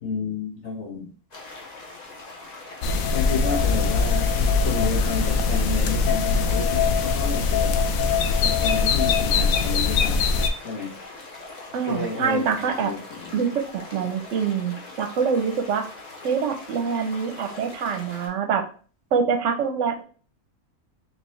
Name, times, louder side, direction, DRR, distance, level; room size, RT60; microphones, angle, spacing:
voice 1, 0.0-1.1 3.1-7.8 8.4-10.2 10.6-10.9 11.8-13.4, left 4 dB, 50° left, -3 dB, 1.5 m, -31 dB
sound 1, 1.3-18.3, left 3 dB, 30° left, 1.0 m, -42 dB
sound 2, 2.8-10.5, left 5 dB, 70° left, 1.0 m, -22 dB
voice 2, 11.7-12.9 13.3-15.8 16.2-18.6 19.1-20.0, right 6 dB, 65° right, 6 dB, 0.9 m, -25 dB
4.4 x 2.9 x 3.1 m, 0.40 s
omnidirectional pair, 1.6 m